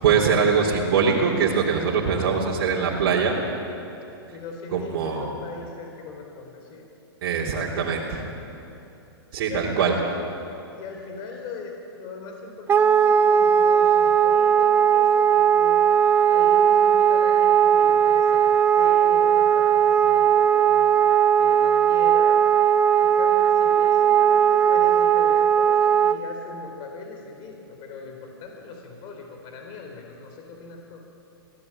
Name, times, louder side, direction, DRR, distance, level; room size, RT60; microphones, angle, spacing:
voice 1, 0.0-3.3 4.7-5.3 7.2-8.2 9.3-9.9, right 6 dB, 55° right, -4 dB, 3.7 m, -22 dB
voice 2, 4.3-6.9 9.4-10.0 10.7-15.8 16.3-20.9 21.4-22.4 23.0-31.0, left 4 dB, 35° left, 2 dB, 4.5 m, -39 dB
Wind instrument woodwind instrument, 12.7-26.2, right 8 dB, 15° right, 0.7 m, -18 dB
23.0 x 17.0 x 8.9 m, 2.8 s
hypercardioid pair, 135°, 13 cm